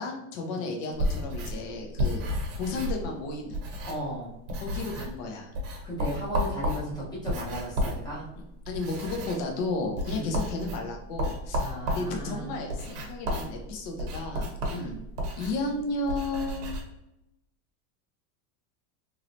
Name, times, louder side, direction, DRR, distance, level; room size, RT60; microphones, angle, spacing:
voice 1, 0.0-2.2 2.6-3.6 4.6-5.5 8.7-14.5 15.4-16.7, left 3 dB, 45° left, 1 dB, 0.7 m, -33 dB
sound 1, 0.9-4.2 4.5-5.2 5.5-16.8, equal, 50° right, 0.8 m, -32 dB
voice 2, 3.8-4.3 5.8-8.3 10.1-10.4 11.6-12.6 14.7-15.0, equal, 10° left, -7 dB, 0.9 m, -36 dB
3.2 x 2.8 x 2.5 m, 0.88 s
supercardioid pair, 160°, 48 cm